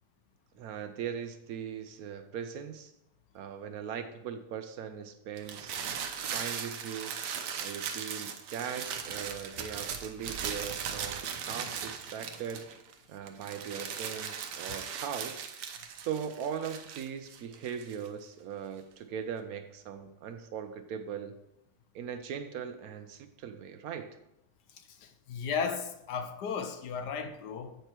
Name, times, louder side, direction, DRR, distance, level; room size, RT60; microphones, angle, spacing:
voice 1, 0.5-2.9 3.3-5.8 6.3-7.2 7.6-12.6 13.1-15.5 16.0-21.4 21.9-24.2, right 8 dB, 70° right, 1.0 m, -39 dB
sound 1, 5.4-12.9 13.3-18.1, right 7 dB, 90° right, 1.3 m, -38 dB
voice 2, 24.7-27.8, left 6 dB, 85° left, 1.3 m, -35 dB
7.9 x 4.7 x 4.4 m
omnidirectional pair, 1.8 m